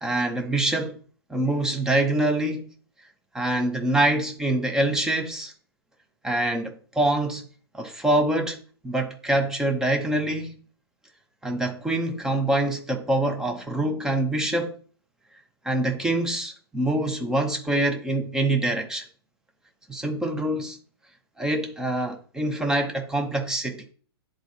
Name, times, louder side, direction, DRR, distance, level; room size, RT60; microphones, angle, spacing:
voice 1, 0.0-1.0 1.3-2.7 3.3-5.5 6.2-7.4 7.7-8.6 8.8-10.5 11.4-14.7 15.6-19.0 19.9-20.8 21.4-23.8, right 1 dB, 5° right, 0.7 m, -25 dB
10.5 x 3.8 x 2.7 m
figure-of-eight pair, 110°, 14 cm